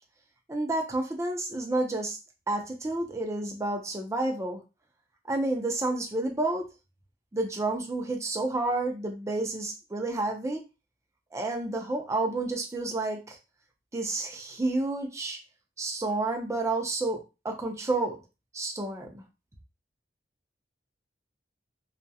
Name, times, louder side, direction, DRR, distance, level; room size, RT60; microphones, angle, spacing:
voice 1, 0.5-2.2 2.5-4.6 5.3-6.7 7.3-10.6 11.3-13.4 13.9-15.4 15.8-18.2 18.5-19.2, right 2 dB, 15° right, 2 dB, 0.4 m, -30 dB
2.3 x 2.1 x 2.6 m, 0.28 s
head